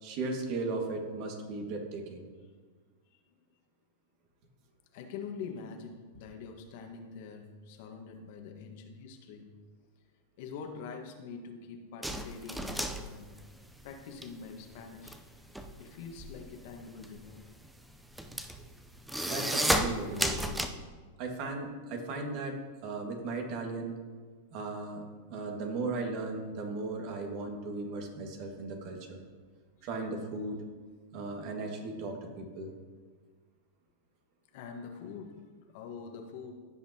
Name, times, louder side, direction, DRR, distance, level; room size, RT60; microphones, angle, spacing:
voice 1, 0.0-2.3 19.3-20.6 21.2-22.6 22.8-24.0 24.5-29.2 29.8-30.6 31.1-32.7, right 3 dB, 50° right, 1 dB, 1.8 m, -36 dB
voice 2, 3.1-3.4 4.9-9.5 10.4-13.4 13.8-15.1 15.8-17.4 18.2-18.3 29.8-29.9 34.5-36.5, left 5 dB, 60° left, 3 dB, 1.4 m, -45 dB
sound 1, 12.0-14.3 14.6-20.7, right 1 dB, 5° right, 0.6 m, -33 dB
15.5 x 5.8 x 2.9 m, 1.5 s
hypercardioid pair, 115°, 0 cm